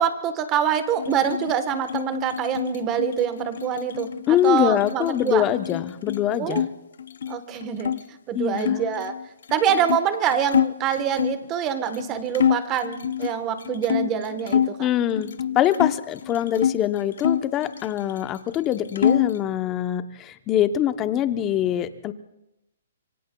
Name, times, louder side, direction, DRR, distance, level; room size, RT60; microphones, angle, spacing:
voice 1, 0.0-5.4 6.4-6.6 7.3-7.9 8.3-9.2 9.5-14.9, right 8 dB, 25° right, 10 dB, 1.2 m, -25 dB
sound 1, 1.0-6.7 7.0-8.0 8.6-11.5 11.9-12.1 12.3-14.8 15.2-16.8 17.2-18.3 18.5-19.4, left 9 dB, 70° left, 0.5 m, -27 dB
voice 2, 4.3-6.7 8.3-8.9 14.8-22.1, left 11 dB, 20° left, 11 dB, 0.8 m, -24 dB
26.5 x 24.0 x 2.3 m, 0.90 s
hypercardioid pair, 150°, 0 cm